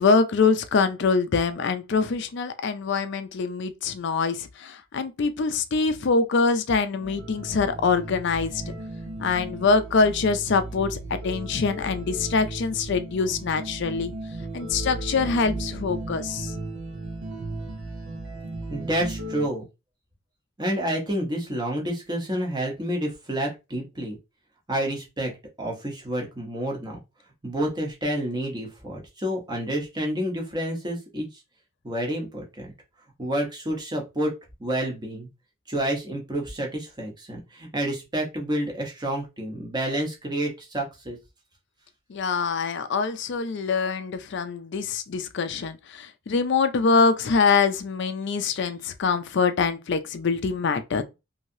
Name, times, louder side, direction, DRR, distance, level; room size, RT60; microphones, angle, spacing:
voice 1, 0.0-8.6 9.2-14.1 14.5-16.5 42.1-51.0, left 4 dB, 55° left, 0.4 m, -24 dB
sound 1, 7.0-19.5, right 2 dB, 80° right, 0.9 m, -35 dB
voice 2, 18.7-19.7 20.6-24.2 24.7-25.3 25.6-27.0 27.4-31.4 31.8-32.7 33.2-34.3 34.6-35.3 35.7-41.2, right 1 dB, 20° right, 0.9 m, -29 dB
3.1 x 2.7 x 2.6 m
head